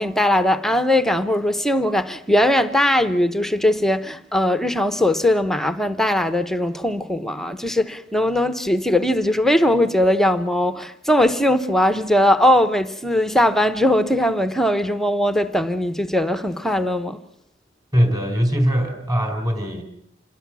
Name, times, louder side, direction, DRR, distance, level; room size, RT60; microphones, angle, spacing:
voice 1, 0.0-17.2, left 1 dB, ahead, 0.9 m, -20 dB
voice 2, 17.9-19.8, equal, 20° right, 4.4 m, -21 dB
27.5 x 21.0 x 6.2 m
head